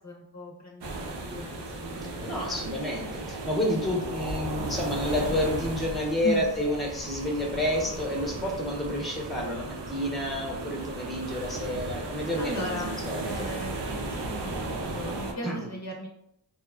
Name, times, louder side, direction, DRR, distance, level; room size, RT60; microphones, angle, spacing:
voice 1, 0.0-2.6 6.2-6.4 12.4-12.9 13.3-16.1, left 1 dB, 40° left, -1 dB, 0.6 m, -37 dB
sound 1, 0.8-15.3, right 2 dB, 65° right, 0.6 m, -35 dB
voice 2, 2.2-13.5 15.4-15.7, left 1 dB, ahead, -1 dB, 0.7 m, -30 dB
2.7 x 2.3 x 2.2 m, 0.80 s
cardioid pair, 50°, 45 cm